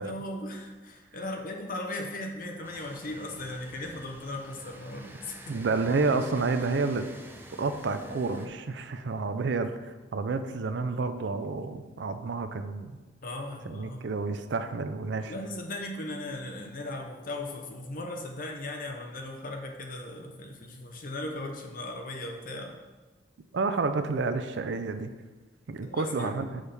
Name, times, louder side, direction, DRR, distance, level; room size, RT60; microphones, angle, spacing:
voice 1, 0.0-5.5 13.2-14.0 15.3-22.8 25.8-26.3, left 2 dB, 50° left, 2 dB, 0.8 m, -37 dB
sound 1, 2.6-8.5, right 1 dB, 10° right, 0.5 m, -48 dB
voice 2, 5.5-7.1 7.5-13.0 13.7-15.3 23.5-25.1 25.7-26.6, right 4 dB, 70° right, 9 dB, 0.4 m, -30 dB
6.3 x 5.5 x 3.4 m, 1.3 s
head